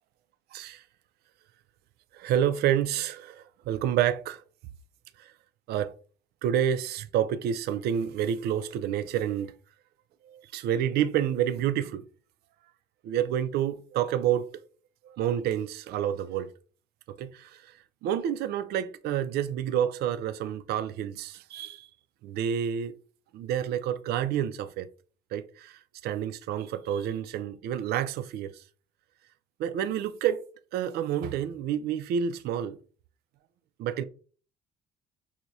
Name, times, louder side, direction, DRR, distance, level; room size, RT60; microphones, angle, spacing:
voice 1, 0.5-0.8 2.1-4.4 5.7-5.9 6.4-9.5 10.3-12.0 13.0-14.6 15.1-16.5 17.2-17.6 18.0-21.9 22.2-22.9 23.3-24.9 25.3-28.5 29.6-30.4 30.7-32.8 33.8-34.0, right 9 dB, 70° right, 0.4 m, -29 dB
5.9 x 2.1 x 2.6 m
cardioid pair, 110°, 17 cm